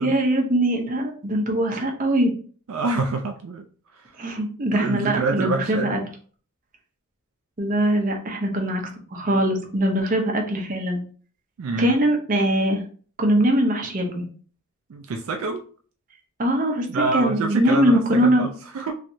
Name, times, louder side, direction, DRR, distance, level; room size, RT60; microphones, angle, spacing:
voice 1, 0.0-2.3 4.2-6.0 7.6-8.8 9.1-11.0 11.8-12.8 13.2-14.2 16.4-18.5, right 1 dB, 35° right, 1 dB, 0.7 m, -22 dB
voice 2, 2.7-3.6 4.7-6.0 11.6-12.0 14.9-15.6 16.9-18.9, right 3 dB, 70° right, 4 dB, 0.4 m, -26 dB
3.2 x 2.8 x 2.6 m, 0.43 s
head